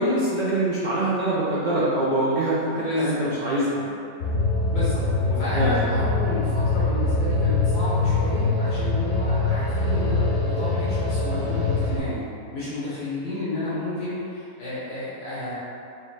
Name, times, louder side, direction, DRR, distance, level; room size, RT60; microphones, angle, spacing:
voice 1, 0.0-3.9 5.3-6.0, right 1 dB, 65° right, -7 dB, 0.4 m, -24 dB
voice 2, 2.7-3.3 4.7-12.2 12.5-15.6, left 1 dB, 85° left, -11 dB, 1.6 m, -31 dB
sound 1, 4.2-12.0, left 3 dB, 60° left, 1.0 m, -23 dB
4.8 x 3.1 x 3.2 m, 2.5 s
omnidirectional pair, 1.6 m